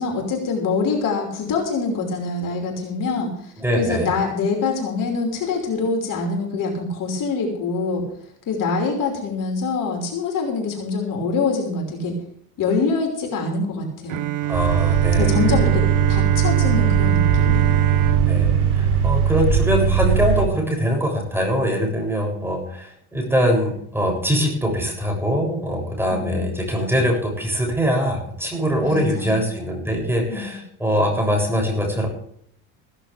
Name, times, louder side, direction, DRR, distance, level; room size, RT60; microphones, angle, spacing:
voice 1, 0.0-8.0 8.5-12.1 12.6-14.3 15.2-17.8 26.1-26.5 28.8-29.5 30.3-30.5, left 4 dB, 45° left, 2 dB, 5.5 m, -25 dB
voice 2, 3.6-4.1 14.4-15.4 18.3-32.1, equal, 5° right, 1 dB, 7.3 m, -23 dB
Bowed string instrument, 14.1-20.0, right 15 dB, 45° right, 1.0 m, -25 dB
sound 1, 14.5-20.4, right 7 dB, 90° right, 4.2 m, -19 dB
16.5 x 15.0 x 3.5 m, 0.66 s
supercardioid pair, 95°, 44 cm